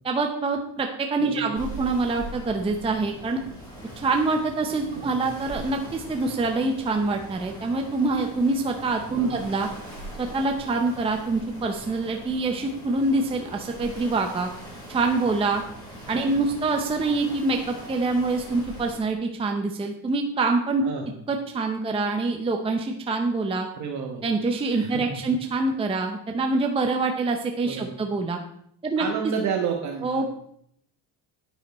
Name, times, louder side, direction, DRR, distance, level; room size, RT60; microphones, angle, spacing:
voice 1, 0.0-3.4 4.0-9.7 10.2-14.5 14.9-15.6 16.1-20.8 21.3-23.7 24.2-28.4 28.8-29.0 30.0-30.3, right 3 dB, 15° right, 3 dB, 0.7 m, -25 dB
voice 2, 1.2-1.6 5.0-5.3 9.1-9.6 16.1-16.5 20.8-21.1 23.8-24.2 24.7-25.2 27.6-27.9 29.0-30.3, right 6 dB, 45° right, 2 dB, 1.2 m, -31 dB
sound 1, 1.5-19.0, right 1 dB, 10° left, 5.0 m, -41 dB
10.0 x 9.4 x 4.2 m, 0.69 s
cardioid pair, 170°, 40 cm